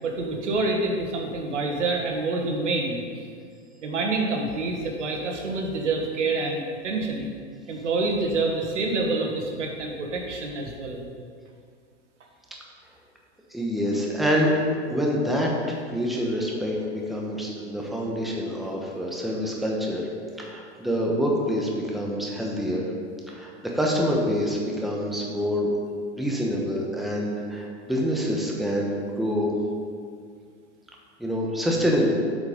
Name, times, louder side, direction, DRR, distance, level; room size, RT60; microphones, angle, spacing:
voice 1, 0.0-3.2 3.8-7.3 7.7-11.0, right 3 dB, 85° right, 1 dB, 1.5 m, -27 dB
voice 2, 13.5-20.1 20.4-22.8 23.3-25.7 26.2-29.5 31.2-32.2, equal, ahead, -2 dB, 1.1 m, -26 dB
8.0 x 5.2 x 5.3 m, 2.1 s
hypercardioid pair, 115°, 35 cm